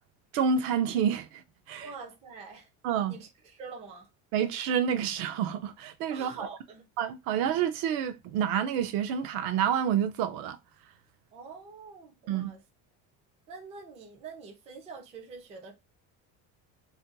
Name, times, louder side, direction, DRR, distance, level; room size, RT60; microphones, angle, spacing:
voice 1, 0.3-1.4 1.7-1.8 2.8-3.2 4.3-6.5 7.0-10.6 12.3-12.5, right 8 dB, 65° right, 0.5 m, -28 dB
voice 2, 1.8-2.7 3.1-4.1 6.1-6.8 11.3-12.6 13.5-15.7, right 4 dB, 20° right, 0.3 m, -45 dB
2.5 x 2.2 x 3.9 m
cardioid pair, 180°, 38 cm